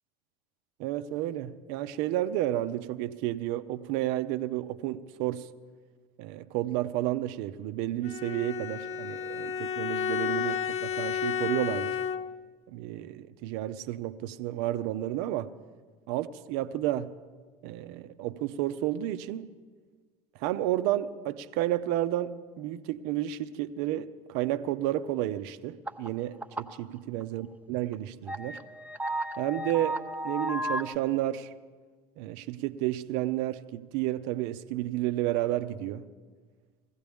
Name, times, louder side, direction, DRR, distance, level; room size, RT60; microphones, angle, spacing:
voice 1, 0.8-5.5 6.2-12.0 12.7-15.5 16.1-17.1 17.6-19.5 20.4-28.6 29.4-31.5 32.2-36.1, right 14 dB, 60° right, 0.6 m, -31 dB
Bowed string instrument, 8.0-12.5, left 8 dB, 35° left, 0.6 m, -32 dB
sound 1, 25.9-26.1 26.4-26.8 27.2-27.3 27.9-28.0 28.3-30.9, right 1 dB, 10° right, 0.7 m, -33 dB
19.5 x 16.0 x 3.5 m
hypercardioid pair, 80°, 20 cm